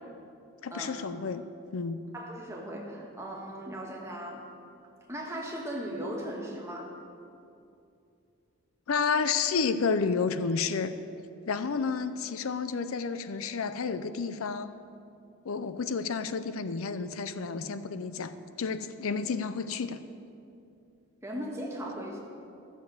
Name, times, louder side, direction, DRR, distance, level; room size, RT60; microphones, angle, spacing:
voice 1, 0.6-1.4 1.7-2.1 8.9-11.0 11.5-14.7 15.4-18.3 18.6-20.0, left 5 dB, 75° left, 12 dB, 0.5 m, -30 dB
voice 2, 2.1-4.5 5.1-7.0 21.2-22.2, equal, 15° right, -2 dB, 1.5 m, -37 dB
13.0 x 6.8 x 7.9 m, 2.6 s
head